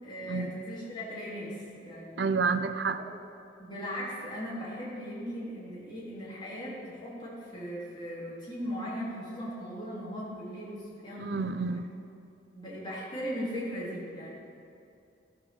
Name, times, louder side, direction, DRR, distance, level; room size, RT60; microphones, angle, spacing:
voice 1, 0.0-2.3 3.6-11.7 12.5-14.3, equal, 25° left, -7 dB, 2.9 m, -38 dB
voice 2, 2.2-3.0 11.2-11.9, right 4 dB, 70° right, 12 dB, 0.5 m, -29 dB
14.0 x 5.5 x 6.9 m, 2.6 s
head